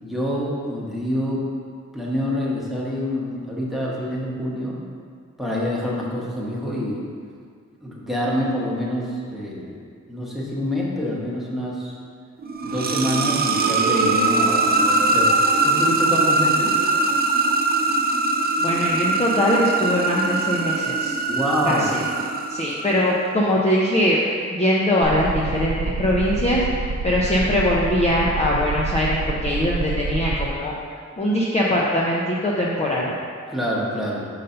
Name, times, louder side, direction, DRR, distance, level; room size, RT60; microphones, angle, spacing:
voice 1, 0.0-1.5 1.9-4.8 5.4-7.0 7.8-9.8 10.1-11.9 12.6-15.3 15.6-16.8 21.2-22.0 33.5-34.3, equal, ahead, -5 dB, 1.0 m, -26 dB
sound 1, 12.4-23.2, right 3 dB, 35° right, 0.4 m, -21 dB
voice 2, 18.6-21.1 21.6-22.0 22.5-24.2 24.5-30.7 31.2-33.1, left 1 dB, 25° left, -5 dB, 0.5 m, -21 dB
sound 2, 25.0-30.5, right 4 dB, 80° right, 0.6 m, -27 dB
5.3 x 4.0 x 5.5 m, 2.1 s
wide cardioid pair, 170°, 29 cm